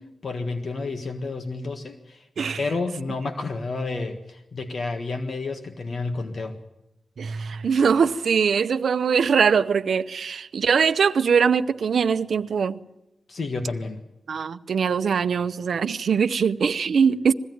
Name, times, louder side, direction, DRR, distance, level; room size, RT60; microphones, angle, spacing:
voice 1, 0.2-2.3 2.5-6.6 13.3-14.0, left 3 dB, 50° left, 1.6 m, -30 dB
voice 2, 7.2-12.8 14.3-17.3, right 6 dB, 75° right, 0.8 m, -22 dB
21.5 x 15.5 x 9.4 m
wide cardioid pair, 135°, 0 cm